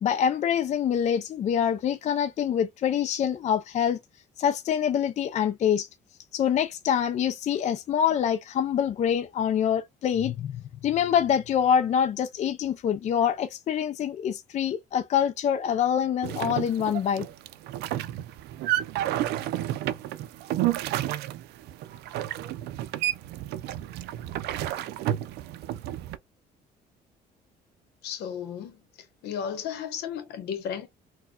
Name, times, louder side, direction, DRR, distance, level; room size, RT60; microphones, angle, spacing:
voice 1, 0.0-4.0 4.4-5.9 6.3-17.3, left 8 dB, 45° left, 0.4 m, -25 dB
sound 1, 16.2-26.2, right 13 dB, 80° right, 0.4 m, -31 dB
voice 2, 28.0-28.8 29.2-30.9, left 8 dB, 75° left, 0.9 m, -34 dB
4.1 x 2.2 x 2.3 m
cardioid pair, 110°, 17 cm